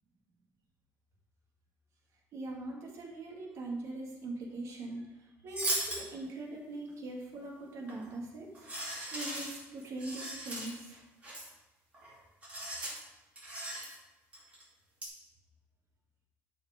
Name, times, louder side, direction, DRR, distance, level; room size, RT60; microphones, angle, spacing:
voice 1, 2.3-11.0, right 2 dB, 55° right, -1 dB, 2.0 m, -42 dB
sound 1, 5.5-6.0 7.9-8.1 8.5-11.0 11.2-11.5 11.9-12.1 12.4-13.0 13.4-14.0 14.3-14.6 15.0-15.1, right 1 dB, 25° right, 2.6 m, -38 dB
11.5 x 4.9 x 4.9 m, 1.0 s
cardioid pair, 165°, 6 cm